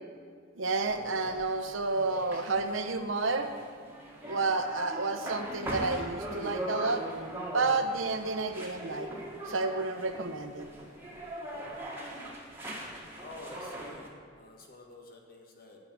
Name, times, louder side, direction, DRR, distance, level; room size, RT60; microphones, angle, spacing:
voice 1, 0.6-3.5 4.2-7.0 7.5-9.1 9.5-10.7, right 3 dB, 75° right, 7 dB, 0.9 m, -30 dB
sound 1, 0.8-14.1, equal, 10° right, 1.6 m, -41 dB
voice 2, 13.1-15.8, left 1 dB, 45° left, 1 dB, 1.6 m, -49 dB
9.8 x 6.7 x 8.8 m, 2.1 s
head